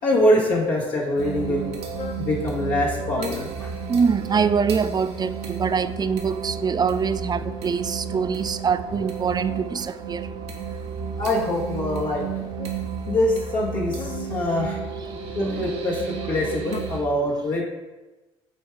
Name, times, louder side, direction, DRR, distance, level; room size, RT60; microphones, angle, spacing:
voice 1, 0.0-1.7 2.2-3.7 11.2-12.3 13.1-14.8 15.3-17.6, left 1 dB, 70° left, -4 dB, 1.9 m, -24 dB
sound 1, 1.2-17.0, right 6 dB, 85° right, 0.9 m, -32 dB
sound 2, 1.9-2.3 3.0-3.5 4.3-4.7 5.4-6.1 7.0-8.2 8.7-9.7 10.5-11.4 12.2-12.9 13.8-14.4 15.1-15.7 16.4-16.8, left 7 dB, 40° left, 0.5 m, -40 dB
voice 2, 3.9-10.3, right 6 dB, 30° right, 13 dB, 0.4 m, -24 dB
7.9 x 3.5 x 5.0 m, 1.1 s
hypercardioid pair, 55°, 14 cm